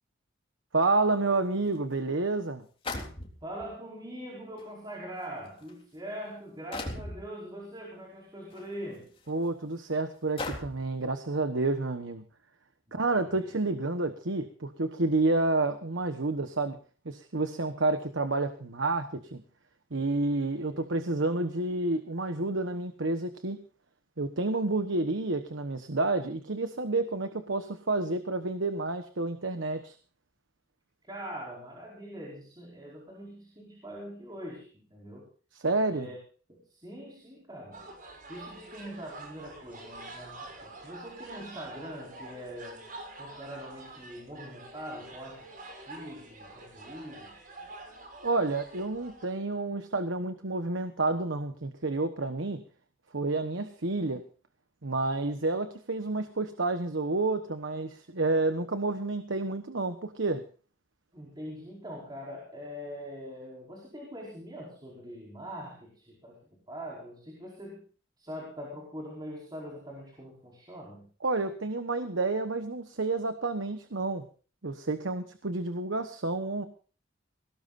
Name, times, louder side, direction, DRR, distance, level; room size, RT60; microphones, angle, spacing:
voice 1, 0.7-2.7 9.3-12.2 12.9-16.8 17.0-19.4 19.9-23.6 24.2-29.9 35.5-36.1 48.2-52.6 53.1-54.2 54.8-60.4 71.2-74.2 74.6-76.6, right 2 dB, 80° right, 9 dB, 1.2 m, -29 dB
sound 1, 1.7-1.8 2.8-3.6 4.6-4.7 5.5-5.7 6.7-7.2 8.5-8.6 9.3-9.4 10.4-10.9, left 2 dB, 30° left, 3.7 m, -37 dB
voice 2, 3.4-9.1 12.9-13.6 20.7-21.1 31.0-35.3 35.9-36.2 36.5-37.8 38.3-42.9 43.2-45.5 45.9-47.5 61.1-66.4 66.7-67.8 68.2-71.0, equal, 20° right, -2 dB, 5.1 m, -43 dB
sound 2, 37.7-49.3, right 2 dB, 45° right, 6.6 m, -47 dB
21.5 x 18.0 x 2.6 m, 0.39 s
head